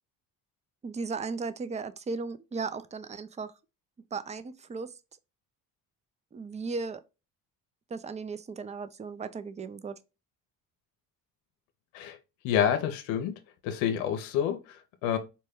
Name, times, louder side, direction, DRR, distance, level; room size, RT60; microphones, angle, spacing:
voice 1, 0.8-3.5 4.1-4.9 6.3-7.0 7.9-9.9, right 4 dB, 20° right, 0.3 m, -36 dB
voice 2, 12.4-13.4 13.6-15.2, left 9 dB, 90° left, 0.6 m, -28 dB
4.3 x 2.2 x 3.4 m
supercardioid pair, 65°, 44 cm